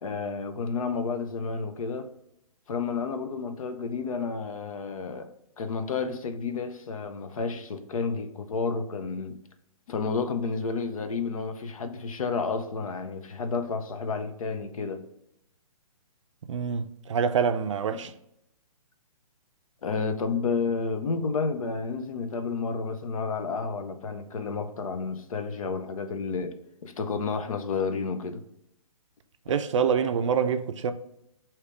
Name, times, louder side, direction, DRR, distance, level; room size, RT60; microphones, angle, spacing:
voice 1, 0.0-2.1 2.7-5.3 5.6-9.4 9.9-15.0 17.9-18.0 19.8-26.5 26.8-28.4, left 4 dB, 65° left, 0.7 m, -31 dB
voice 2, 16.5-18.1 29.5-30.9, right 6 dB, 55° right, 0.4 m, -26 dB
4.9 x 2.9 x 3.2 m
hypercardioid pair, 155°, 19 cm